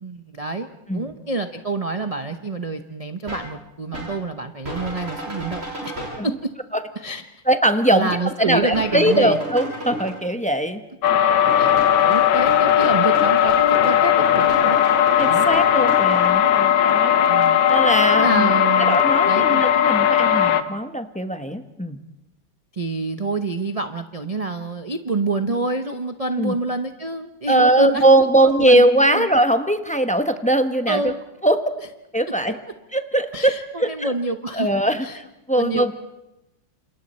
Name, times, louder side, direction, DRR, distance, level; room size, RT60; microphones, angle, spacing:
voice 1, 0.0-5.9 6.2-6.5 6.9-7.3 7.9-9.4 11.6-11.7 12.0-14.8 15.3-15.5 17.3-17.6 18.1-19.6 22.7-28.0 28.4-29.3 30.9-31.2 33.3-34.7 35.0-35.2 35.5-35.9, right 3 dB, 45° right, 7 dB, 0.4 m, -27 dB
sound 1, 3.3-3.5 3.9-4.2 4.6-6.2 8.7-10.1 11.5-16.2, right 1 dB, 30° right, 7.0 m, -33 dB
voice 2, 7.5-10.8 15.2-17.3 17.7-18.5 18.9-22.0 26.4-26.5 27.5-31.1 31.4-31.6 32.1-32.6 32.9-34.1 34.5-35.9, right 1 dB, 5° left, 7 dB, 0.5 m, -20 dB
sound 2, 11.0-20.6, left 10 dB, 80° left, 1.8 m, -17 dB
29.5 x 27.5 x 4.3 m, 0.94 s
omnidirectional pair, 2.1 m